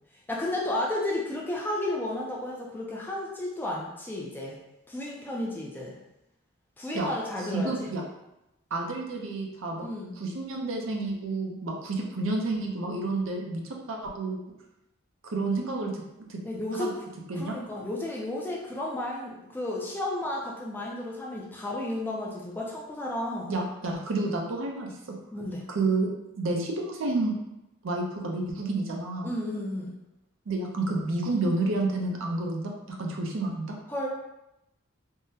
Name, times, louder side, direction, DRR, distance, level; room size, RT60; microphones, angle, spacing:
voice 1, 0.3-4.6 4.9-6.0 6.8-7.9 9.8-10.1 16.4-16.9 17.4-23.5 25.3-25.6 29.2-30.0 33.9-34.1, left 1 dB, 10° left, -3 dB, 0.4 m, -32 dB
voice 2, 7.4-8.0 8.7-9.9 10.2-14.4 15.2-16.0 16.3-16.4 16.7-16.9 17.3-17.6 23.5-25.2 25.7-26.1 26.4-27.3 27.8-29.3 30.5-32.7 33.0-33.8, right 2 dB, 70° right, 0 dB, 0.5 m, -30 dB
3.6 x 2.1 x 2.7 m, 0.89 s
head